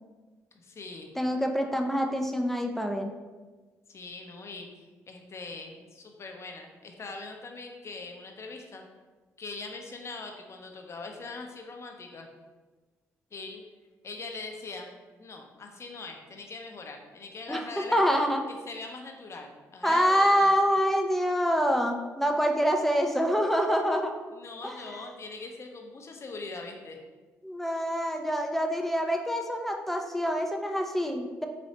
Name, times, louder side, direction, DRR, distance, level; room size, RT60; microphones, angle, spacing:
voice 1, 0.5-1.1 3.9-8.8 9.4-12.3 13.3-13.6 14.0-14.9 15.2-18.0 18.7-20.5 24.3-27.0, left 3 dB, 45° left, 2 dB, 0.7 m, -41 dB
voice 2, 1.2-3.1 17.5-17.6 17.9-18.4 19.8-24.1 24.6-25.0 27.4-31.5, equal, 5° left, 3 dB, 0.5 m, -26 dB
4.2 x 3.1 x 2.9 m, 1.3 s
hypercardioid pair, 50°, 7 cm